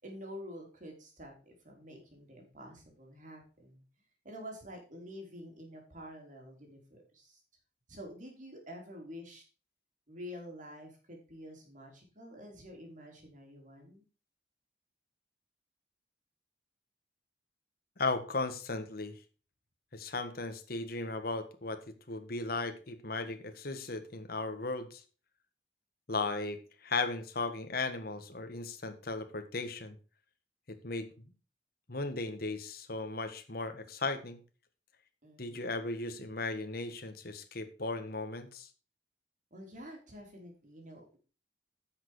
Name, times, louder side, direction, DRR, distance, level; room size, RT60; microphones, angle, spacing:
voice 1, 0.0-3.8 4.2-7.4 7.9-9.4 10.1-14.0 35.2-35.8 39.5-41.2, equal, 45° right, 1 dB, 3.9 m, -48 dB
voice 2, 18.0-19.2 19.9-25.0 26.1-30.0 30.7-31.1 31.9-34.4 35.4-38.7, left 3 dB, 55° left, 8 dB, 1.5 m, -36 dB
10.0 x 6.6 x 4.7 m, 0.36 s
head